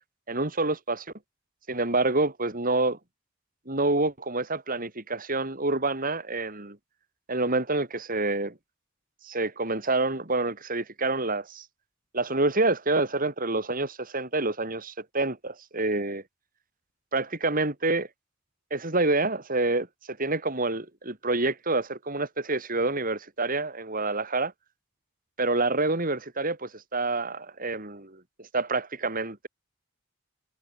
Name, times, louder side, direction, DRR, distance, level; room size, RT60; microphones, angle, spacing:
voice 1, 0.3-1.0 1.7-3.0 3.7-6.8 7.3-8.5 9.2-11.6 12.1-16.2 17.1-18.1 18.7-24.5 25.4-29.5, right 2 dB, 45° right, 4.9 m, -27 dB
head